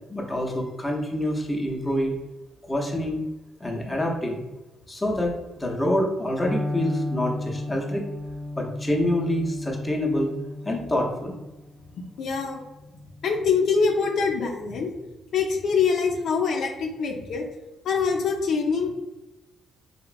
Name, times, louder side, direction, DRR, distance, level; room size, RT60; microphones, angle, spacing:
voice 1, 0.1-2.1 2.7-3.2 3.6-4.4 4.9-8.0 8.6-10.3 10.6-11.4, left 1 dB, 10° left, -1 dB, 0.6 m, -26 dB
Electric guitar, 6.4-14.3, left 2 dB, 25° right, 0.7 m, -35 dB
voice 2, 12.2-12.6 13.2-14.9 15.3-17.5 17.8-19.0, left 5 dB, 70° left, 1 dB, 0.4 m, -24 dB
2.9 x 2.1 x 2.4 m, 1.0 s
cardioid pair, 90°, 0 cm